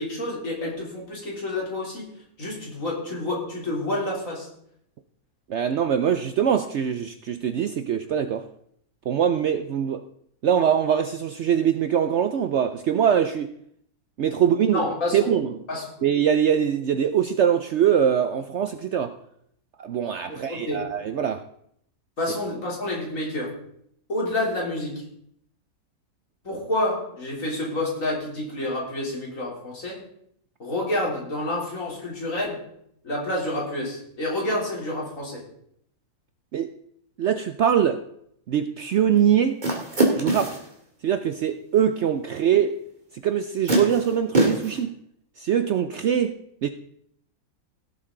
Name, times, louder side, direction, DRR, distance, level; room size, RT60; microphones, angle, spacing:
voice 1, 0.0-2.1 2.4-4.5 14.7-15.3 15.7-15.9 20.3-20.9 22.2-23.6 24.1-25.0 26.4-30.0 30.6-32.6 33.0-35.4, left 1 dB, 55° left, -3 dB, 3.7 m, -29 dB
voice 2, 5.5-8.5 9.1-10.0 10.4-13.5 14.2-14.8 15.1-15.5 16.0-19.2 19.8-21.4 36.5-36.7 37.2-38.0 38.5-39.6 40.1-40.6 41.0-42.8 43.2-45.0 45.4-46.7, right 8 dB, 65° right, 10 dB, 0.7 m, -23 dB
sound 1, 39.6-40.7 42.5-42.6 43.7-44.8, right 1 dB, 30° right, 2.2 m, -23 dB
17.0 x 7.8 x 3.8 m, 0.70 s
omnidirectional pair, 1.6 m